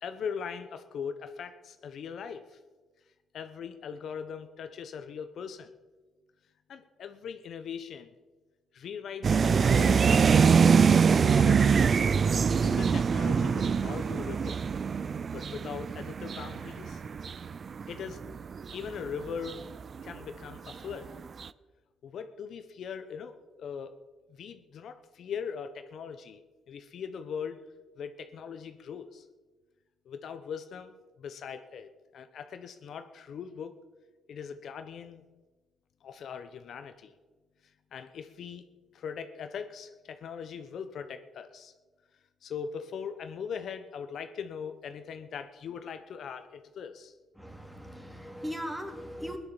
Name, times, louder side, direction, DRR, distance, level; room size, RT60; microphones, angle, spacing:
voice 1, 0.0-2.6 3.3-5.7 6.7-8.1 8.7-10.1 11.2-11.6 12.5-14.6 15.3-17.0 17.9-18.2 18.7-19.6 20.0-21.1 22.0-24.0 24.3-27.6 28.0-29.2 30.0-33.7 34.3-35.2 36.0-37.1 37.9-38.6 38.9-41.7 42.4-47.1, left 7 dB, 65° left, 9 dB, 1.1 m, -40 dB
sound 1, 9.2-20.2 20.7-21.1 21.4-21.5, right 6 dB, 45° right, 0.5 m, -24 dB
voice 2, 47.3-49.4, equal, 5° right, 3 dB, 3.0 m, -39 dB
17.0 x 10.5 x 7.2 m, 1.3 s
cardioid pair, 90°, 0 cm